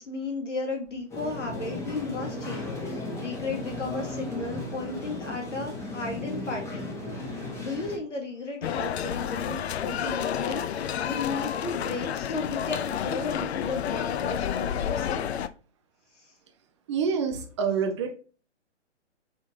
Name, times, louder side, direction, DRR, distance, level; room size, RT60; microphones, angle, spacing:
voice 1, 0.0-7.2 7.6-15.2 16.2-16.3, left 3 dB, 85° left, 1 dB, 1.6 m, -34 dB
sound 1, 1.1-8.0, left 2 dB, 10° left, 1.0 m, -36 dB
sound 2, 8.6-15.5, left 9 dB, 65° left, 0.5 m, -30 dB
voice 2, 16.9-18.1, right 6 dB, 25° right, 5 dB, 0.5 m, -27 dB
5.1 x 3.5 x 2.7 m, 0.38 s
hypercardioid pair, 135°, 35 cm